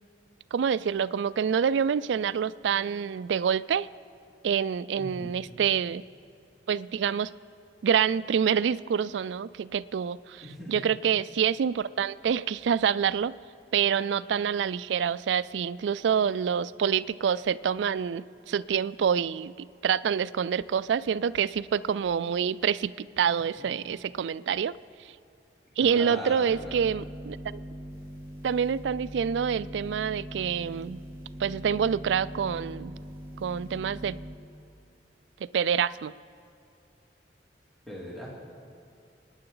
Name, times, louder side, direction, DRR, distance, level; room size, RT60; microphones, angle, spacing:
voice 1, 0.5-3.9 4.4-6.0 6.7-7.3 7.8-13.3 13.7-24.7 25.8-27.6 28.4-31.0 31.4-32.9 33.4-34.2 35.5-36.1, right 7 dB, 90° right, 18 dB, 0.3 m, -27 dB
voice 2, 4.9-5.3 10.4-10.8 23.6-23.7 25.8-26.9 37.9-38.3, equal, ahead, -7 dB, 2.5 m, -39 dB
sound 1, 26.5-34.3, equal, 25° right, 3.7 m, -41 dB
28.5 x 9.8 x 3.9 m, 2.4 s
head